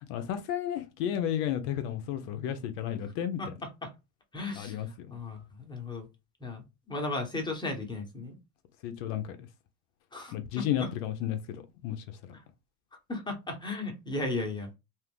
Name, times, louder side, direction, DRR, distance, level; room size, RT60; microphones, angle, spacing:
voice 1, 0.1-3.4 4.5-5.1 8.8-9.5 10.3-12.0, left 10 dB, 55° left, 0.6 m, -32 dB
voice 2, 4.3-4.8 5.1-6.1 6.4-8.3 10.1-10.9 12.3-12.4 13.1-14.8, left 2 dB, 10° left, 0.9 m, -35 dB
2.5 x 2.4 x 3.5 m
supercardioid pair, 115°, 46 cm